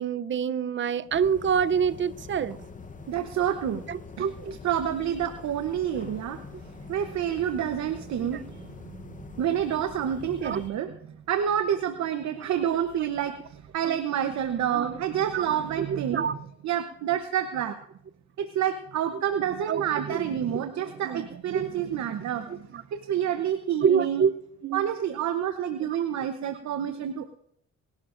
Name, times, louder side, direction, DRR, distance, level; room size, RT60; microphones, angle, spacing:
voice 1, 0.0-2.6 3.9-4.6 10.4-10.6 13.9-14.0 14.7-14.8 15.3-15.6 15.9-16.3 19.7-20.2 21.0-21.3 21.5-21.6 22.5-22.8 23.8-24.3 24.6-24.9 27.0-27.1, right 7 dB, 40° right, 0.6 m, -27 dB
sound 1, 1.1-10.7, left 5 dB, 25° left, 0.9 m, -44 dB
voice 2, 3.1-3.8 4.2-4.3 4.6-9.0 9.4-10.9 11.3-16.3 16.6-17.7 18.4-24.2 24.7-27.4, right 9 dB, 65° right, 0.9 m, -28 dB
26.5 x 12.0 x 2.6 m
cardioid pair, 90°, 30 cm